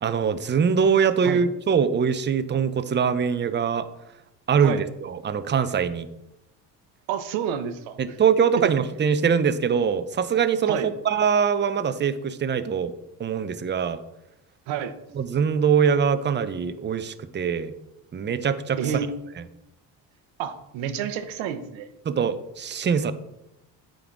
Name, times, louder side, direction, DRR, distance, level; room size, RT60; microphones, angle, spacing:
voice 1, 0.0-3.9 4.5-6.1 8.0-12.9 13.2-14.0 15.1-17.7 18.1-18.8 22.1-23.1, right 6 dB, 25° right, 11 dB, 0.6 m, -23 dB
voice 2, 7.1-8.0 8.6-8.7 10.7-10.9 14.7-14.9 18.8-19.1 20.4-21.9, right 8 dB, 80° right, 10 dB, 0.9 m, -29 dB
8.5 x 3.9 x 4.7 m, 0.89 s
supercardioid pair, 75°, 45 cm